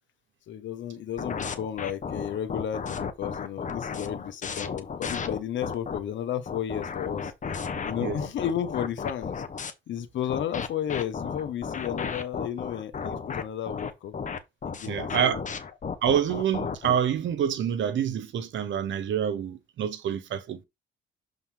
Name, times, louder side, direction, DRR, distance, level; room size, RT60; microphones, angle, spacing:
voice 1, 0.5-7.3 7.8-9.4 9.9-14.1 14.7-15.5, left 10 dB, 70° left, 1.3 m, -33 dB
sound 1, 1.2-6.0 6.5-9.7 10.3-17.0, left 6 dB, 40° left, 1.2 m, -33 dB
voice 2, 14.9-15.4 16.0-20.6, right 8 dB, 70° right, 1.2 m, -27 dB
7.2 x 4.1 x 3.5 m
cardioid pair, 90°, 20 cm